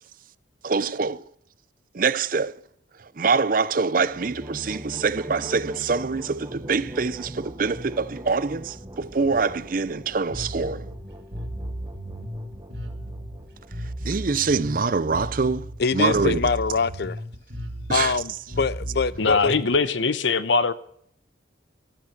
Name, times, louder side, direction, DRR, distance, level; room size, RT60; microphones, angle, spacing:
voice 1, 0.6-1.2 1.9-2.5 3.2-10.9 14.0-15.7 15.9-16.4 17.9-18.1, right 4 dB, 45° right, 0.6 m, -24 dB
sound 1, 4.0-14.6, right 1 dB, 20° right, 1.4 m, -41 dB
Bass guitar, 10.3-19.8, equal, 65° right, 2.5 m, -35 dB
voice 2, 15.8-17.2 17.9-19.7, left 5 dB, 60° left, 0.5 m, -24 dB
voice 3, 19.2-20.7, left 4 dB, 85° left, 1.0 m, -21 dB
13.5 x 13.0 x 6.0 m
head